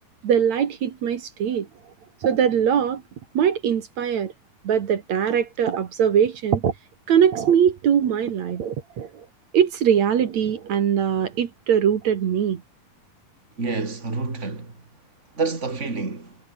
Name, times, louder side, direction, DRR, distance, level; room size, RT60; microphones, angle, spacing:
voice 1, 0.2-1.7 2.2-3.0 3.3-4.3 4.6-6.7 7.1-9.3 9.5-12.6, right 8 dB, 65° right, 3.0 m, -21 dB
voice 2, 13.6-14.7 15.3-16.4, right 3 dB, 20° right, 4.0 m, -28 dB
omnidirectional pair, 3.6 m